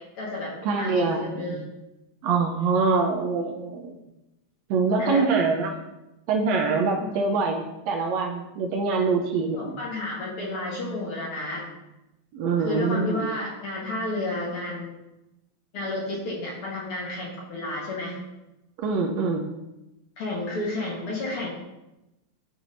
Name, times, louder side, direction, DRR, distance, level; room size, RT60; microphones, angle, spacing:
voice 1, 0.0-1.6 5.0-5.3 7.0-7.1 9.6-11.6 12.6-14.9 15.7-18.2 20.2-21.5, left 2 dB, 55° left, -3 dB, 2.0 m, -31 dB
voice 2, 0.6-1.6 2.2-3.9 4.7-5.8 6.3-9.8 12.3-13.3 18.8-19.4, right 4 dB, 75° right, 2 dB, 1.8 m, -24 dB
12.0 x 4.7 x 2.6 m, 0.94 s
omnidirectional pair, 3.4 m